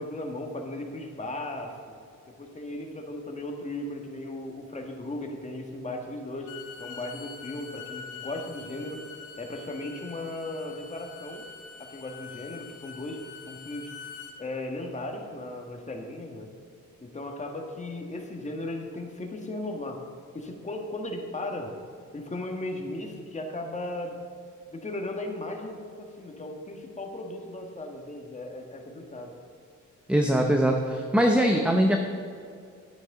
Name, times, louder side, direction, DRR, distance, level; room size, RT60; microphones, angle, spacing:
voice 1, 0.0-2.0 2.4-9.0 9.4-11.4 11.8-13.9 14.4-16.5 17.0-20.0 20.3-21.7 22.1-24.2 24.7-29.3, left 1 dB, 25° left, 2 dB, 1.7 m, -36 dB
Bowed string instrument, 6.3-14.4, left 6 dB, 85° left, 1.2 m, -45 dB
voice 2, 30.1-32.0, equal, 5° right, 2 dB, 0.8 m, -22 dB
10.5 x 9.4 x 3.8 m, 2.3 s
cardioid pair, 90°, 30 cm